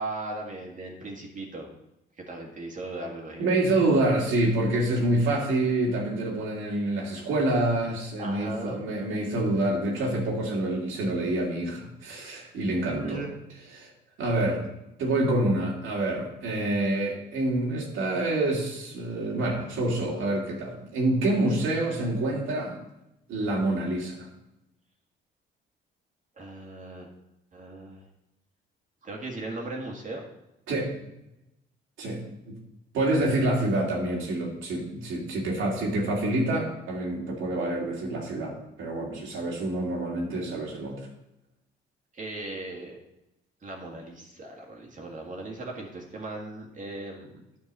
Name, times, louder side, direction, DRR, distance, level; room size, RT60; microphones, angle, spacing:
voice 1, 0.0-1.7 2.2-4.0 8.2-8.8 12.9-13.4 26.4-27.1 27.5-28.0 29.0-30.2 42.1-43.0 43.6-47.3, right 2 dB, 40° right, 0 dB, 2.0 m, -38 dB
voice 2, 3.4-13.2 13.7-13.9 14.2-14.6 15.0-22.8 23.3-24.3 30.7-31.1 32.0-32.2 32.5-32.6 32.9-41.1, right 1 dB, 80° right, -2 dB, 2.5 m, -27 dB
9.6 x 4.6 x 7.4 m, 0.89 s
cardioid pair, 90°, 20 cm